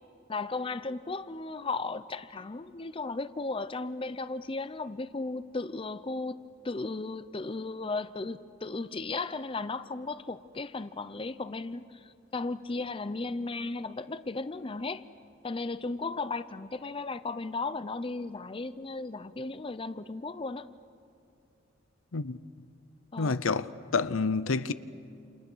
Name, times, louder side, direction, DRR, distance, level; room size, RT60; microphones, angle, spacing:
voice 1, 0.3-6.4 6.6-15.0 15.4-20.7 23.1-23.4, left 3 dB, 25° left, 0.6 m, -35 dB
voice 2, 23.2-24.7, left 4 dB, 90° left, 0.8 m, -28 dB
29.0 x 28.5 x 6.3 m
head